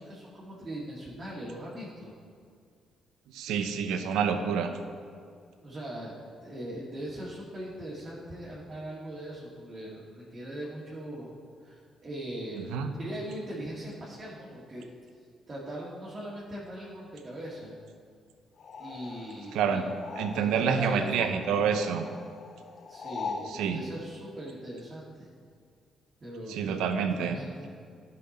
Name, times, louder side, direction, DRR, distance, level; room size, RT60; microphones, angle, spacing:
voice 1, 0.0-2.1 5.6-11.4 11.6-14.8 15.5-17.7 18.8-19.9 20.3-21.6 22.9-25.3 26.2-26.8 27.1-27.7, right 1 dB, 35° right, -8 dB, 2.1 m, -40 dB
voice 2, 3.3-4.7 12.6-12.9 19.5-19.8 20.2-22.0 23.5-23.8 26.5-27.4, right 6 dB, 90° right, 7 dB, 0.7 m, -28 dB
sound 1, 18.6-20.8 21.1-23.5, left 4 dB, 55° left, 0.7 m, -41 dB
11.5 x 5.9 x 4.2 m, 2.2 s
cardioid pair, 90°, 0 cm